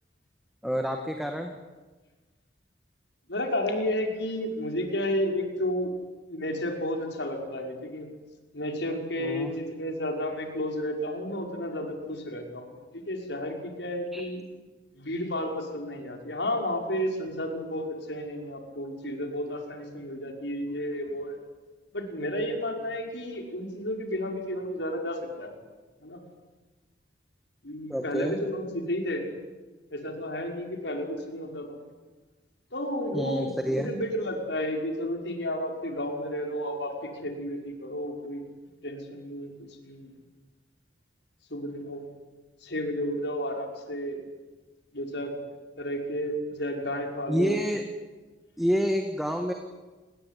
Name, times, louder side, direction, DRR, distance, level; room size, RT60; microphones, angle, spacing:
voice 1, 0.6-1.6 9.2-9.5 14.1-14.2 27.9-28.3 33.1-33.9 47.3-47.8 48.6-49.5, equal, ahead, 4 dB, 1.9 m, -28 dB
voice 2, 3.3-5.9 6.3-8.1 8.5-14.4 15.0-21.4 21.9-25.5 26.0-26.2 27.6-29.2 29.9-31.8 32.7-38.4 38.8-40.1 41.5-42.0 42.6-44.2 44.9-45.3 45.8-47.7, equal, 80° left, 3 dB, 5.9 m, -32 dB
29.5 x 21.0 x 9.5 m, 1.3 s
head